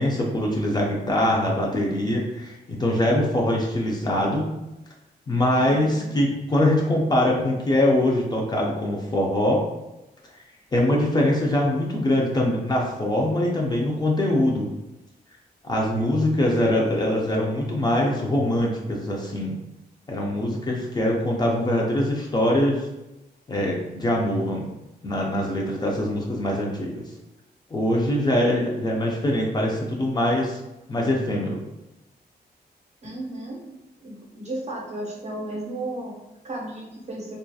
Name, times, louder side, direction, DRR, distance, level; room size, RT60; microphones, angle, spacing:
voice 1, 0.0-4.5 5.3-9.6 10.7-14.7 15.6-19.6 20.1-22.9 23.5-24.7 25.0-27.0 27.7-30.6 30.9-31.6, left 1 dB, 25° left, -2 dB, 0.4 m, -23 dB
voice 2, 5.6-6.1 33.0-33.8 34.0-37.4, right 1 dB, 40° right, -1 dB, 0.6 m, -34 dB
2.6 x 2.3 x 2.3 m, 0.97 s
wide cardioid pair, 155°, 17 cm